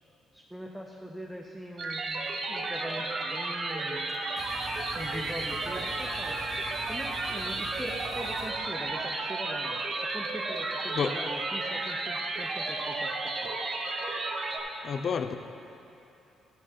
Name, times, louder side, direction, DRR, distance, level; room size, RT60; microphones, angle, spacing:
voice 1, 0.3-4.1 4.9-6.4 6.9-13.5, equal, ahead, 0 dB, 0.7 m, -42 dB
sound 1, 1.8-14.6, right 2 dB, 50° right, 1.0 m, -33 dB
sound 2, 4.1-9.3, equal, 20° right, 1.8 m, -46 dB
voice 2, 14.8-15.4, left 6 dB, 55° left, 9 dB, 0.5 m, -29 dB
12.0 x 6.9 x 4.5 m, 2.8 s
cardioid pair, 90°, 0 cm